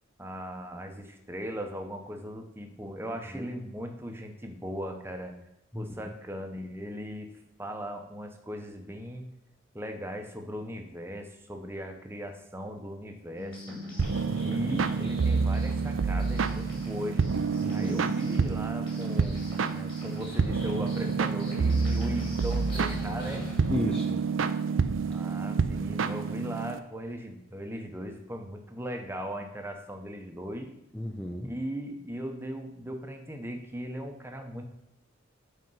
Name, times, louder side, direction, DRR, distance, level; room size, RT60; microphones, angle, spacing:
voice 1, 0.2-5.4 5.7-7.3 7.6-9.3 9.7-13.8 14.3-17.2 17.7-19.4 19.7-23.4 25.1-30.7 31.4-34.6, equal, 10° right, 4 dB, 0.9 m, -38 dB
sound 1, 13.4-23.7, left 1 dB, 25° left, 2.3 m, -42 dB
sound 2, 14.0-26.8, right 5 dB, 75° right, 0.5 m, -28 dB
voice 2, 14.4-14.9 17.6-18.1 23.7-24.3 30.9-31.5, left 1 dB, 5° left, 2 dB, 0.5 m, -34 dB
7.8 x 4.5 x 5.5 m, 0.85 s
head